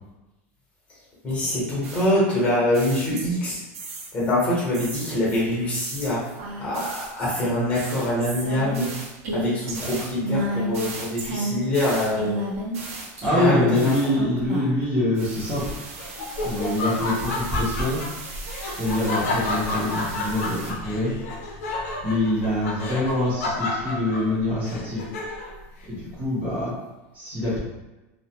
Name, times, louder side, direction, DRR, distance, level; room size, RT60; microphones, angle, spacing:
voice 1, 1.2-3.6 4.1-6.2 6.6-8.9 9.3-12.3 13.2-14.1, left 1 dB, 15° left, -6 dB, 0.9 m, -24 dB
sound 1, 1.8-4.3 4.7-14.8 15.2-20.7, right 2 dB, 85° right, 0.6 m, -34 dB
voice 2, 13.2-15.7 16.4-18.0 18.8-21.2 22.0-25.0 25.9-26.7 27.1-27.6, left 1 dB, 20° right, -8 dB, 0.8 m, -25 dB
Laughter, 15.6-25.6, left 2 dB, 90° left, 0.5 m, -30 dB
2.4 x 2.1 x 2.8 m, 1.0 s
supercardioid pair, 170°, 7 cm